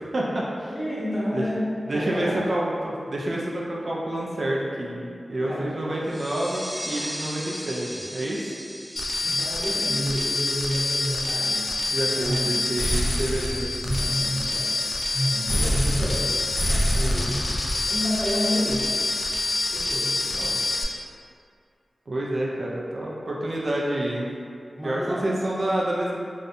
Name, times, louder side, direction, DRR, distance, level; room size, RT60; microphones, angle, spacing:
voice 1, 0.0-0.7 1.3-1.4 1.9-8.5 11.9-13.7 20.3-20.6 22.1-24.3 24.8-26.1, right 1 dB, 60° right, -4 dB, 0.3 m, -28 dB
voice 2, 0.7-1.6 1.9-2.4 5.5-5.7 9.2-11.7 12.0-12.5 13.8-16.3 16.8-17.4 17.9-18.9 19.7-20.1 24.7-25.2, equal, 15° left, -9 dB, 0.8 m, -29 dB
sound 1, 6.0-11.4, equal, 65° left, 1.1 m, -38 dB
sound 2, 9.0-20.8, left 2 dB, 40° left, 0.3 m, -26 dB
2.6 x 2.1 x 2.5 m, 2.4 s
wide cardioid pair, 65°, 0 cm